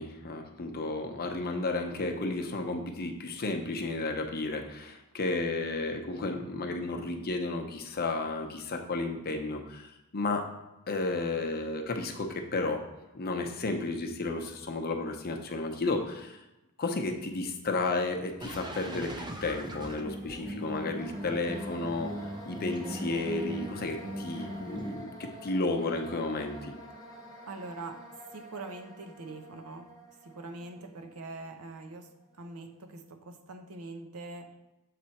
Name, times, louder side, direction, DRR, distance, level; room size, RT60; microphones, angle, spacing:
voice 1, 0.0-10.5 10.9-12.8 13.1-16.4 16.8-22.1 22.4-26.7, left 2 dB, 45° left, 4 dB, 0.7 m, -32 dB
sound 1, 18.4-24.9, right 1 dB, 20° right, 0.5 m, -40 dB
sound 2, 21.0-32.9, equal, 15° left, 1.0 m, -49 dB
voice 2, 27.5-28.0 28.3-29.9 30.2-34.5, right 3 dB, 85° right, 5 dB, 0.7 m, -43 dB
7.5 x 3.3 x 4.1 m, 0.97 s
head